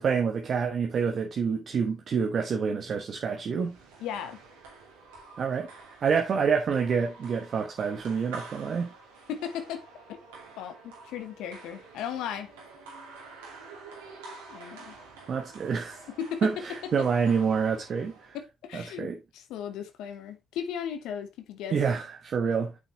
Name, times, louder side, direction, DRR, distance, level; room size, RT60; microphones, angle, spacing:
voice 1, 0.0-3.8 5.4-5.7 6.0-8.9 15.3-16.0 16.4-18.4 18.7-19.2 21.7-22.7, right 6 dB, 55° right, 1.1 m, -27 dB
sound 1, 3.5-18.4, right 3 dB, 85° right, 2.5 m, -48 dB
voice 2, 4.0-4.4 9.3-9.8 10.6-12.5 14.5-14.9 16.2-16.6 18.3-21.8, left 8 dB, 75° left, 0.9 m, -36 dB
8.2 x 5.8 x 2.9 m
hypercardioid pair, 45°, 0 cm